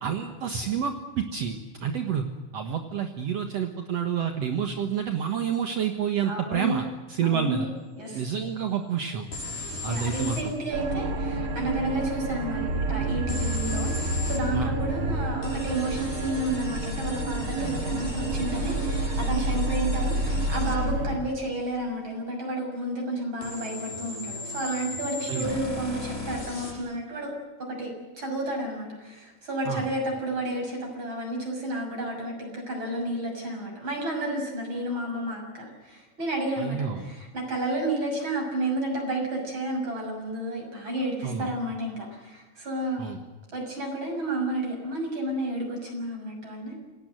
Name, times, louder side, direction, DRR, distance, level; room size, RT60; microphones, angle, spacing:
voice 1, 0.0-2.2 2.5-6.8 7.1-7.7 8.1-9.3 9.8-10.5 14.5-14.7 25.3-25.6 29.7-29.8 36.6-37.0 41.2-41.5 43.0-43.2, right 7 dB, 60° right, 5 dB, 2.4 m, -29 dB
voice 2, 6.2-6.8 7.2-7.6 8.0-8.2 9.9-27.3 27.6-43.0 43.5-46.8, right 1 dB, 35° right, 1 dB, 7.4 m, -31 dB
sound 1, 9.3-10.5 13.3-14.4 15.4-20.8 23.4-26.7, left 2 dB, 85° left, 8.9 m, -37 dB
sound 2, 10.7-21.2, right 2 dB, 80° right, 4.3 m, -29 dB
27.5 x 19.0 x 7.8 m, 1.2 s
omnidirectional pair, 3.6 m